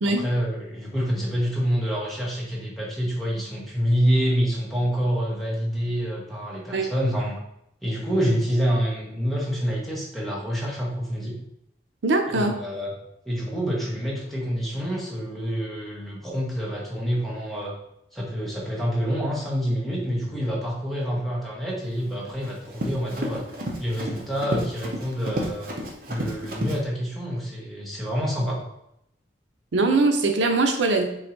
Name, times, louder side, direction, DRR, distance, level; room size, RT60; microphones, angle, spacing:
voice 1, 0.1-7.4 7.8-11.4 12.3-12.9 13.2-17.7 18.1-23.4 23.8-25.7 26.1-28.6, equal, ahead, -5 dB, 1.0 m, -27 dB
voice 2, 12.0-12.6 29.7-31.1, right 3 dB, 90° right, 5 dB, 0.6 m, -21 dB
Run, 22.0-26.8, equal, 50° right, 0.7 m, -32 dB
3.8 x 2.6 x 4.4 m, 0.79 s
head